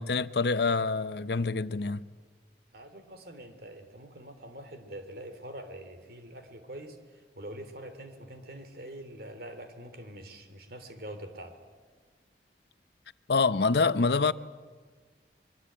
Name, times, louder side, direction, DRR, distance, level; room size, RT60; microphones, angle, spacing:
voice 1, 0.0-2.0 13.3-14.3, left 4 dB, 65° left, 0.7 m, -26 dB
voice 2, 2.7-11.6, right 1 dB, 55° right, 3.1 m, -44 dB
24.0 x 23.0 x 8.8 m
head